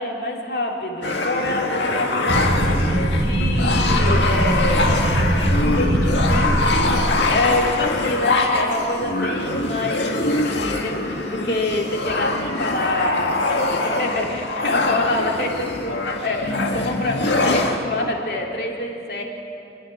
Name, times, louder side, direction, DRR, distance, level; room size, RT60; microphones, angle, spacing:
voice 1, 0.0-5.2 5.5-19.2, left 2 dB, 60° left, 0 dB, 3.0 m, -26 dB
sound 1, 1.0-17.8, left 2 dB, 80° left, 1.9 m, -23 dB
sound 2, 2.3-8.4, right 1 dB, 35° right, 1.0 m, -21 dB
26.5 x 10.5 x 9.9 m, 2.7 s
head